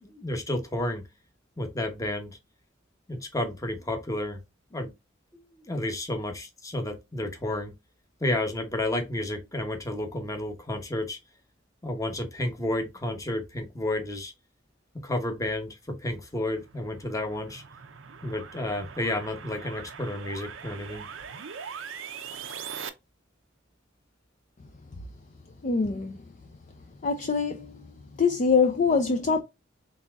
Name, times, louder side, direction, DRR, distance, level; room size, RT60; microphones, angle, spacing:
voice 1, 0.0-1.0 1.6-2.4 3.1-4.4 4.7-4.9 5.6-7.7 8.2-11.2 11.8-14.3 15.0-17.6 18.2-21.1, left 1 dB, 15° left, 0.9 m, -31 dB
sound 1, 16.4-22.9, right 7 dB, 80° right, 0.6 m, -41 dB
voice 2, 25.6-26.3 27.0-27.9 28.2-29.4, left 5 dB, 40° left, 0.5 m, -24 dB
4.1 x 3.5 x 2.4 m
head